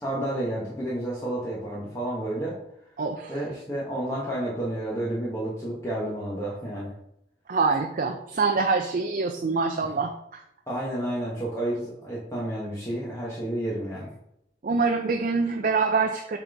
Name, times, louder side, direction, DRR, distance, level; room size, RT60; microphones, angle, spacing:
voice 1, 0.0-2.6 3.3-6.9 10.7-14.1, right 1 dB, 15° left, -7 dB, 1.2 m, -30 dB
voice 2, 3.0-3.3 7.5-10.4 14.6-16.4, right 4 dB, 50° right, 4 dB, 0.5 m, -25 dB
7.0 x 4.1 x 3.5 m, 0.79 s
head